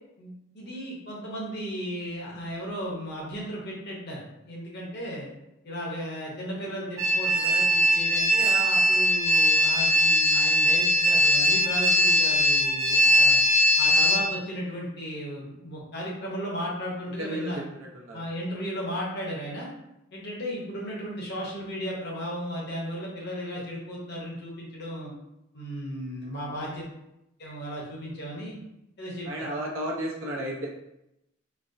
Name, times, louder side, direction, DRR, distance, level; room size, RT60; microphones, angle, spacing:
voice 1, 0.2-5.3 5.6-13.4 13.8-17.6 18.1-19.7 20.1-25.1 25.5-26.9 27.4-28.6 29.0-29.3, equal, 55° left, -3 dB, 1.0 m, -35 dB
sound 1, 7.0-14.2, equal, 15° right, 0.7 m, -21 dB
voice 2, 17.2-18.2 29.2-30.7, right 1 dB, 90° right, -3 dB, 0.6 m, -33 dB
4.2 x 2.0 x 2.6 m, 0.86 s
head